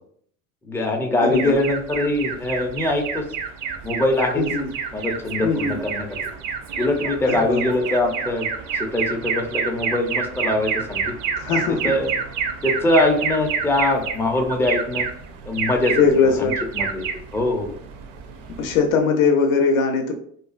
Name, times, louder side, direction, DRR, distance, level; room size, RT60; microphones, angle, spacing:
voice 1, 0.6-3.3 3.8-4.4 4.9-6.1 6.8-8.5 8.7-11.1 11.5-11.6 11.8-12.1 12.6-15.1 15.4-16.0 16.4-17.0 17.3-17.7, left 1 dB, 5° left, 2 dB, 0.3 m, -22 dB
voice 2, 1.2-1.5 4.4-4.7 5.4-5.8 7.3-7.6 11.4-11.8 16.0-16.6 18.6-20.1, left 5 dB, 80° left, 4 dB, 0.5 m, -20 dB
Alarm, 1.3-19.0, right 6 dB, 50° right, 0.5 m, -29 dB
2.5 x 2.3 x 2.3 m, 0.62 s
hypercardioid pair, 75°, 41 cm